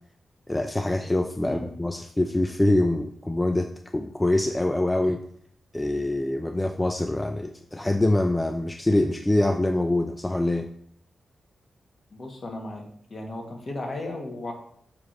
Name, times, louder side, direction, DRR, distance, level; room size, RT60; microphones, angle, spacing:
voice 1, 0.5-5.2 5.7-10.7, left 1 dB, 15° left, 6 dB, 0.5 m, -24 dB
voice 2, 12.1-12.8 13.1-14.5, left 2 dB, 50° left, 1 dB, 1.7 m, -35 dB
7.2 x 3.2 x 5.3 m, 0.64 s
cardioid pair, 65°, 0 cm